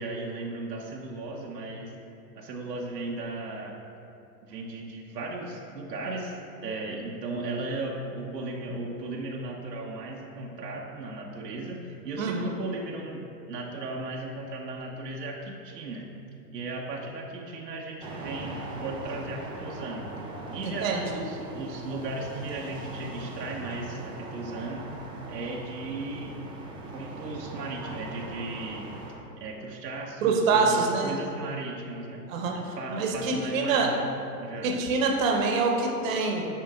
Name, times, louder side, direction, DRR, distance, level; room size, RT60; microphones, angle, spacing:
voice 1, 0.0-1.9 2.3-3.8 4.4-16.0 16.5-20.1 20.5-24.9 25.3-26.3 26.9-28.9 29.4-32.2 32.5-34.7, right 2 dB, 75° right, -1 dB, 1.1 m, -36 dB
voice 2, 12.2-12.5 20.6-21.2 30.2-31.1 32.3-33.9 34.6-36.5, right 4 dB, 50° right, 1 dB, 1.2 m, -26 dB
sound 1, 18.0-29.1, right 2 dB, 10° right, 0.5 m, -40 dB
8.8 x 4.7 x 3.6 m, 2.7 s
hypercardioid pair, 125°, 49 cm